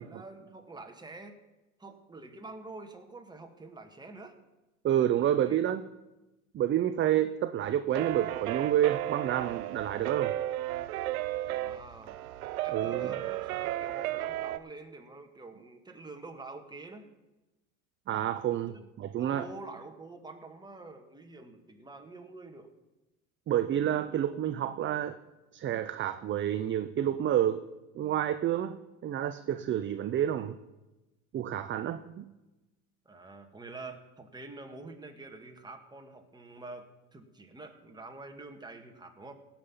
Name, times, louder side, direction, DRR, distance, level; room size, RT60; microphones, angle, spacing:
voice 1, 0.0-1.4 1.8-4.4 5.3-5.6 11.5-12.2 12.6-17.1 18.7-18.8 19.2-22.7 33.0-39.3, right 3 dB, 10° right, 4 dB, 1.7 m, -47 dB
voice 2, 4.8-5.8 6.5-10.3 12.7-13.1 18.1-18.7 19.0-19.4 23.5-25.2 25.5-27.6 27.9-30.6 31.3-32.3, right 11 dB, 30° right, 11 dB, 0.6 m, -29 dB
sound 1, 7.6-14.6, right 14 dB, 90° right, 0.7 m, -34 dB
17.0 x 5.9 x 7.1 m, 1.0 s
hypercardioid pair, 90°, 42 cm